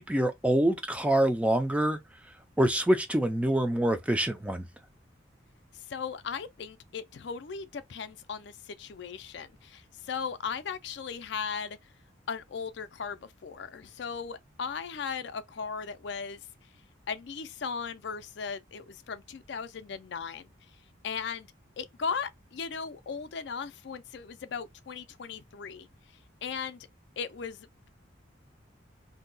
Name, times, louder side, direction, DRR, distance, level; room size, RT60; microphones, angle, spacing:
voice 1, 0.0-2.0 2.6-4.7, right 1 dB, 5° right, 0.3 m, -25 dB
voice 2, 5.7-11.8 12.3-16.4 17.1-20.5 21.0-21.5 21.8-25.9 26.4-26.9 27.2-27.9, left 6 dB, 60° left, 0.4 m, -37 dB
2.6 x 2.2 x 3.9 m
head